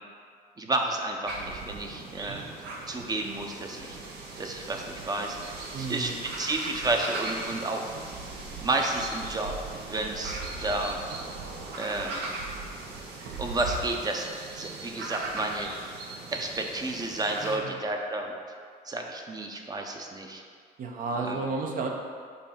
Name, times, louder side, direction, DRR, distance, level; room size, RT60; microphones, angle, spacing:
voice 1, 0.6-2.5 2.9-4.0 4.4-6.1 6.4-7.9 8.6-9.5 9.8-11.0 11.8-12.3 13.4-15.9 16.3-18.6 18.8-20.4 21.2-21.4, right 2 dB, 25° right, 2 dB, 0.7 m, -31 dB
sound 1, 1.3-17.6, right 3 dB, 75° right, 1.0 m, -38 dB
voice 2, 5.7-6.2 17.4-17.8 20.8-21.9, right 3 dB, 55° right, 2 dB, 0.9 m, -32 dB
6.8 x 2.7 x 5.7 m, 2.1 s
cardioid pair, 110°, 17 cm